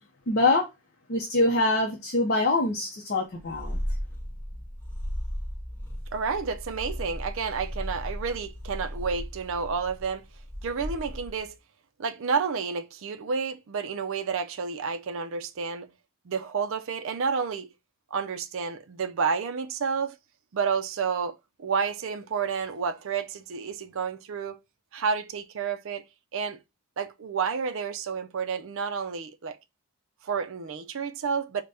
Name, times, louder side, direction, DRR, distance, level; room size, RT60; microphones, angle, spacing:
voice 1, 0.3-0.7 1.1-3.8, left 2 dB, 45° left, 0.6 m, -24 dB
Purr, 3.4-11.5, equal, 10° left, 1.5 m, -36 dB
voice 2, 6.1-10.3 10.6-11.6 12.0-15.9 16.3-17.7 18.1-20.2 20.5-24.6 24.9-26.0 26.3-26.6 27.0-29.6 30.2-31.6, right 5 dB, 60° right, 0.4 m, -30 dB
4.0 x 2.2 x 3.3 m
head